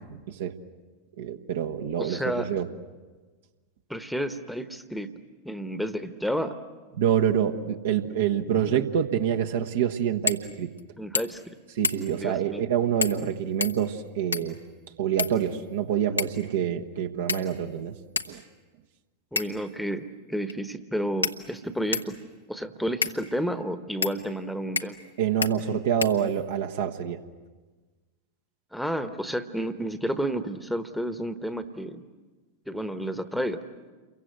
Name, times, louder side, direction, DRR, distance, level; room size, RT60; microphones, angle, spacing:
voice 1, 0.1-0.5 1.2-2.7 7.0-10.7 11.8-14.6 15.0-17.9 18.3-18.4 25.2-27.2, right 9 dB, 60° right, 4 dB, 1.3 m, -26 dB
voice 2, 2.0-2.5 3.9-5.1 5.4-6.6 11.0-11.4 12.1-12.6 19.3-22.2 22.5-25.0 28.7-32.0 32.7-33.6, equal, ahead, 11 dB, 1.2 m, -31 dB
sound 1, 10.3-10.5 10.8-10.9 11.1-11.5 11.8-12.2 13.0-13.3 13.6-14.6 15.2-15.8 16.2-16.5 17.3-17.7 18.2-18.3 19.4-19.7 20.5-20.6 21.2-22.2 23.0-23.2 24.0-24.2 24.8-25.1 25.4-25.5 26.0-26.6, left 4 dB, 80° left, 1.0 m, -30 dB
28.5 x 23.0 x 7.9 m, 1.3 s
figure-of-eight pair, 90°, 0 cm